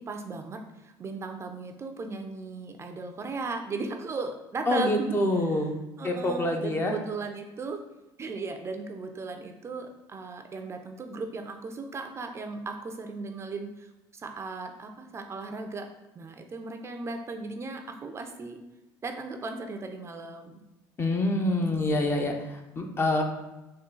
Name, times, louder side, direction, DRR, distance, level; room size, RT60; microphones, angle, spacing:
voice 1, 0.0-5.2 6.0-7.8 8.2-15.9 16.2-18.6 19.0-20.6, right 3 dB, 30° right, 5 dB, 0.4 m, -37 dB
voice 2, 4.7-5.7 6.0-6.9 21.0-23.2, left 1 dB, 25° left, 3 dB, 0.6 m, -26 dB
3.7 x 2.4 x 3.8 m, 1.0 s
supercardioid pair, 95°, 9 cm